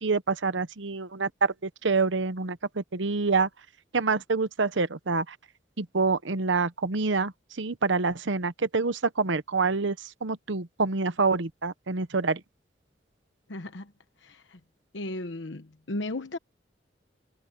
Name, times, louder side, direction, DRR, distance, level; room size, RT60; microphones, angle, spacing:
voice 1, 0.0-3.5 3.9-5.4 5.8-7.3 7.6-10.0 10.2-12.4, right 4 dB, 85° right, 1.0 m, -26 dB
voice 2, 13.5-13.9 14.2-14.6 14.9-16.4, left 2 dB, 75° left, 1.1 m, -35 dB
head